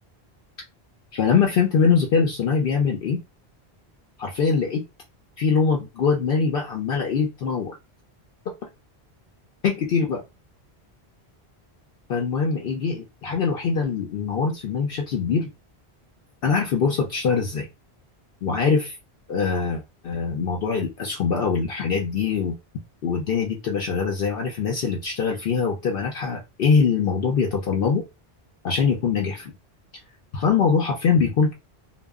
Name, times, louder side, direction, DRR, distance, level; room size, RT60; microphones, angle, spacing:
voice 1, 1.1-3.2 4.2-4.8 5.4-7.7 9.6-10.2 12.1-15.5 16.4-17.7 18.4-18.9 19.3-22.6 23.0-28.0 28.6-29.5 30.3-31.5, left 5 dB, 65° left, 0.8 m, -23 dB
2.2 x 2.0 x 3.4 m
omnidirectional pair, 1.1 m